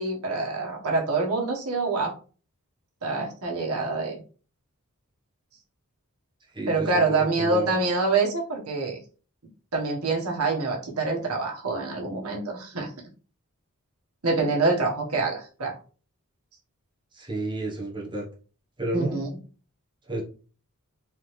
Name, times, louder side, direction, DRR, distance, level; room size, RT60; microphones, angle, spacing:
voice 1, 0.0-2.1 3.0-4.2 6.7-9.0 9.7-12.9 14.2-15.7 18.9-19.3, right 3 dB, 80° right, 0 dB, 1.2 m, -26 dB
voice 2, 6.5-7.7 17.1-18.2 18.8-19.2 20.1-20.2, right 2 dB, 20° right, -2 dB, 1.0 m, -31 dB
3.7 x 3.4 x 3.1 m, 0.38 s
head